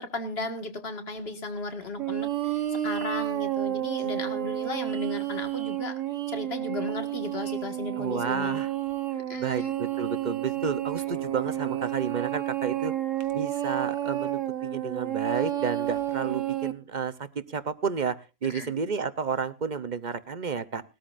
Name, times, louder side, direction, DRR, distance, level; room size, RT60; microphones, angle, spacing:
voice 1, 0.0-6.0 6.3-8.6 9.1-9.7 16.2-16.4 18.4-18.7, left 3 dB, 45° left, 6 dB, 2.0 m, -35 dB
sound 1, 2.0-16.7, right 12 dB, 65° right, 1.4 m, -30 dB
voice 2, 8.0-8.7 9.4-12.9 13.3-20.8, right 6 dB, 45° right, 11 dB, 0.7 m, -31 dB
20.0 x 13.0 x 2.5 m, 0.29 s
omnidirectional pair, 1.5 m